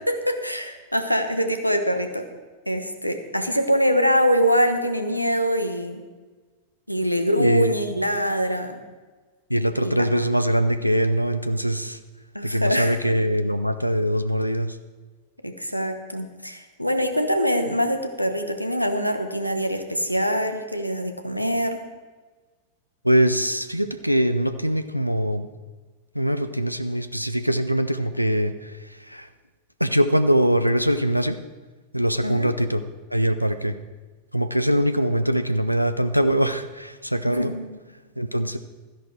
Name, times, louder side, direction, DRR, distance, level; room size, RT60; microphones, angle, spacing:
voice 1, 0.1-2.2 2.7-6.0 6.9-8.8 9.8-10.0 12.3-12.9 15.4-21.8 32.2-32.5 37.3-37.8, equal, 90° left, 7 dB, 1.1 m, -24 dB
voice 2, 7.4-7.8 9.5-12.0 12.4-14.8 23.0-25.5 26.1-29.3 29.8-31.4 31.9-32.8 33.1-33.8 34.3-37.5 38.2-38.6, equal, 90° right, 10 dB, 0.6 m, -22 dB
13.0 x 10.5 x 4.7 m, 1.3 s
figure-of-eight pair, 90°, 0 cm